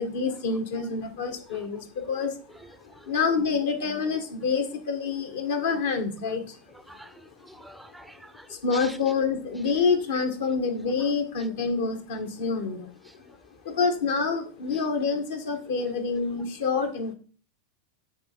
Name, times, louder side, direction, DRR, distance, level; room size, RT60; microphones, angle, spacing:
voice 1, 0.0-2.4 3.1-6.6 8.5-12.9 13.6-17.1, left 5 dB, 70° left, 5 dB, 1.3 m, -27 dB
voice 2, 7.4-8.5 8.7-9.0, right 1 dB, 5° right, 12 dB, 0.5 m, -45 dB
6.3 x 3.4 x 5.1 m, 0.40 s
hypercardioid pair, 90°, 0 cm